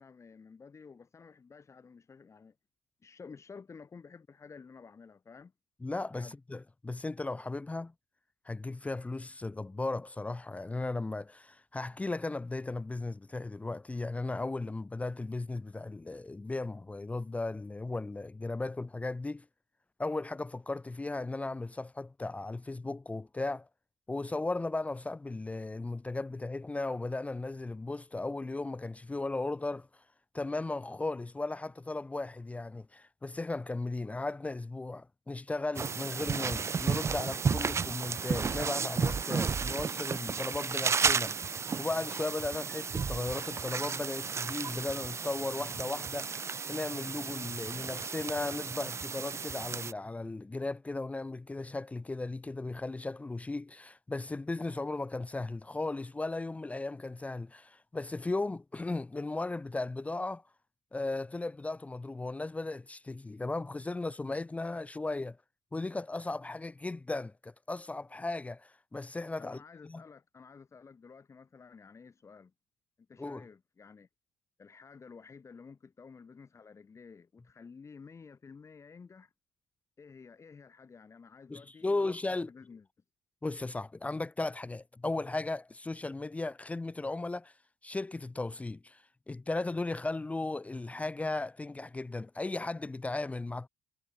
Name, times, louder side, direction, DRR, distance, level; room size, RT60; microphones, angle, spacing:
voice 1, 0.0-2.6 3.0-5.5 6.1-6.3 69.4-72.5 73.1-74.1 74.6-79.3 80.0-82.9, left 5 dB, 35° left, 5.4 m, -52 dB
voice 2, 5.8-7.9 8.4-19.5 20.0-23.7 24.1-30.0 30.3-60.4 60.9-65.4 65.7-69.6 69.9-70.0 73.2-73.4 81.5-82.5 83.4-87.5 87.8-93.7, left 2 dB, 15° left, 0.6 m, -36 dB
sound 1, 35.8-49.9, right 5 dB, 35° right, 0.8 m, -33 dB
supercardioid pair, 70°, 9 cm